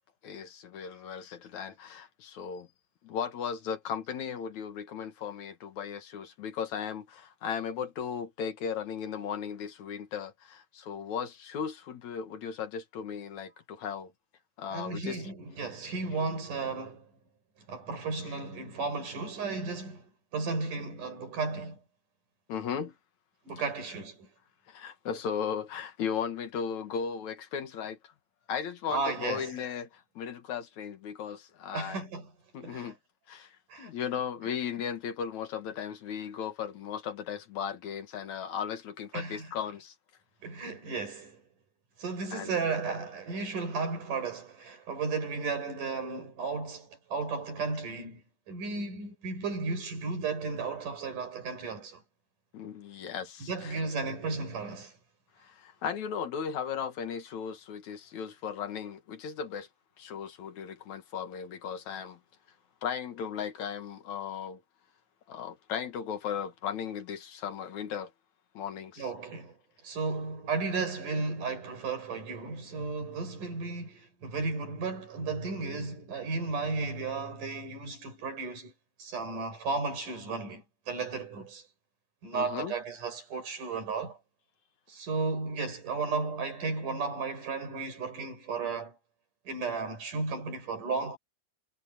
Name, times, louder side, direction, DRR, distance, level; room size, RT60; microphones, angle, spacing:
voice 1, 0.2-2.7 3.0-14.1 14.6-15.2 22.5-22.9 24.7-28.0 28.5-32.0 32.5-33.0 33.3-33.5 33.8-39.9 42.3-42.6 52.5-53.8 55.4-59.7 60.0-62.2 62.8-64.6 65.3-68.1 68.5-69.1 82.3-82.7, left 7 dB, 65° left, 2.9 m, -36 dB
voice 2, 14.7-17.1 17.7-21.8 23.4-24.3 28.9-29.5 31.7-32.3 32.6-33.0 33.7-33.9 39.1-39.5 40.4-41.4 42.0-52.0 53.4-55.0 69.0-69.6 69.8-78.7 79.0-81.7 82.2-84.2 84.9-89.0 89.5-91.2, right 4 dB, 85° right, 7.2 m, -34 dB
omnidirectional pair, 3.6 m